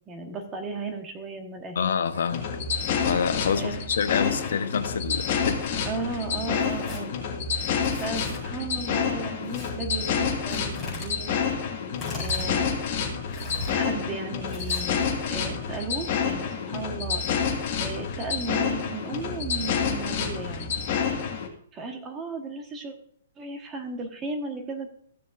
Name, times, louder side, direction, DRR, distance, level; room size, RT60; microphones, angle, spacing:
voice 1, 0.1-1.9 3.5-3.8 5.8-7.1 7.5-11.5 11.8-11.9 12.1-12.7 13.7-17.2 17.8-20.7 21.7-22.9 23.4-24.9, right 3 dB, 15° right, 3 dB, 1.3 m, -35 dB
voice 2, 1.7-2.5 3.0-5.7, left 6 dB, 70° left, 10 dB, 1.0 m, -27 dB
sound 1, 2.3-21.5, left 6 dB, 35° left, 1.7 m, -28 dB
Tearing, 6.5-7.0 7.8-8.4 9.5-9.7 10.5-11.1 11.9-12.5 13.3-13.7 14.5-15.1, left 3 dB, 5° left, 4.6 m, -37 dB
15.0 x 6.9 x 2.6 m, 0.63 s
hypercardioid pair, 170°, 0 cm